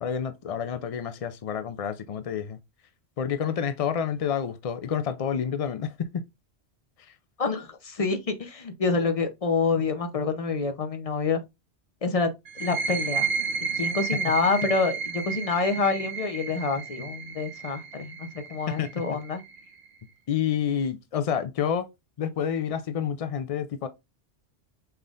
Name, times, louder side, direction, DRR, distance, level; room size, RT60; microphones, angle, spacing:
voice 1, 0.0-2.6 3.2-6.2 14.5-14.7 18.7-18.9 20.3-21.9 22.2-23.9, left 8 dB, 65° left, 0.3 m, -29 dB
voice 2, 7.4-11.4 12.0-12.3 12.6-13.3 13.8-19.4, left 4 dB, 35° left, 0.7 m, -27 dB
sound 1, 12.5-19.9, right 5 dB, 65° right, 1.1 m, -32 dB
5.6 x 3.5 x 2.4 m
omnidirectional pair, 1.1 m